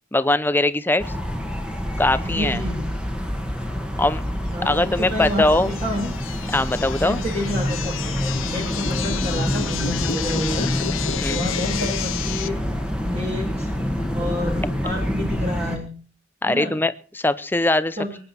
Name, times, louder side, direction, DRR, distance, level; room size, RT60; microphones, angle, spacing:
voice 1, 0.1-1.1 2.0-2.6 4.0-4.2 4.6-5.7 6.5-7.2 11.2-11.4 16.4-18.0, left 2 dB, 10° left, 14 dB, 0.6 m, -21 dB
sound 1, 1.0-15.8, equal, 5° right, 1.7 m, -27 dB
voice 2, 2.2-2.9 4.5-6.1 7.0-8.2 8.4-10.7 11.3-12.6 13.0-13.7 14.1-15.9 16.5-16.8 18.0-18.2, left 1 dB, 35° right, -1 dB, 3.2 m, -29 dB
sound 2, 4.8-12.5, left 9 dB, 85° left, 0.7 m, -31 dB
23.0 x 10.0 x 4.4 m, 0.38 s
head